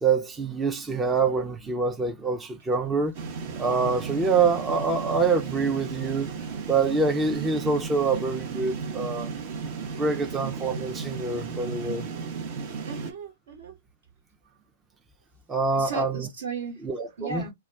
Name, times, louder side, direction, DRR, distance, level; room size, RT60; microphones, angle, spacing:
voice 1, 0.0-3.1 3.6-6.3 6.7-9.3 10.0-12.1 15.5-16.3 16.8-17.5, right 4 dB, 15° right, 0.5 m, -25 dB
sound 1, 3.1-13.1, right 5 dB, 45° right, 0.7 m, -34 dB
voice 2, 12.8-13.7 15.7-16.8 17.2-17.5, right 4 dB, 65° right, 1.2 m, -35 dB
2.3 x 2.1 x 3.4 m
figure-of-eight pair, 110°, 0 cm